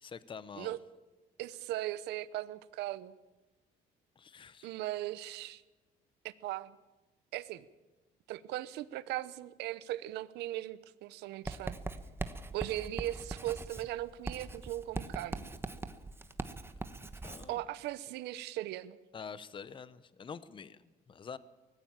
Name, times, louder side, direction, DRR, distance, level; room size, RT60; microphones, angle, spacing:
voice 1, 0.0-0.7 4.2-4.7 17.2-17.6 19.1-21.4, left 6 dB, 30° left, 16 dB, 0.8 m, -46 dB
voice 2, 1.4-3.2 4.6-5.6 6.2-6.8 7.3-7.6 8.3-11.8 12.5-15.5 17.5-19.0, right 15 dB, 85° right, 16 dB, 0.9 m, -38 dB
Writing, 11.5-17.5, right 3 dB, 15° right, 1.1 m, -41 dB
19.5 x 15.0 x 8.9 m, 1.1 s
cardioid pair, 110°, 17 cm